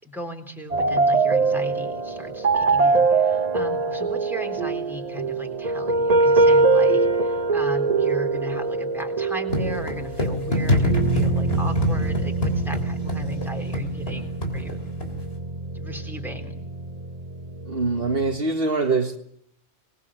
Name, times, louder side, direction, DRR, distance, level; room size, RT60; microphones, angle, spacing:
voice 1, 0.0-14.8 15.7-16.5, equal, ahead, 3.7 m, -36 dB
sound 1, 0.7-18.4, right 3 dB, 35° right, 1.2 m, -23 dB
sound 2, 9.5-15.3, left 1 dB, 60° left, 3.6 m, -26 dB
voice 2, 17.7-19.2, right 3 dB, 55° right, 1.9 m, -23 dB
25.5 x 20.5 x 7.5 m
omnidirectional pair, 1.2 m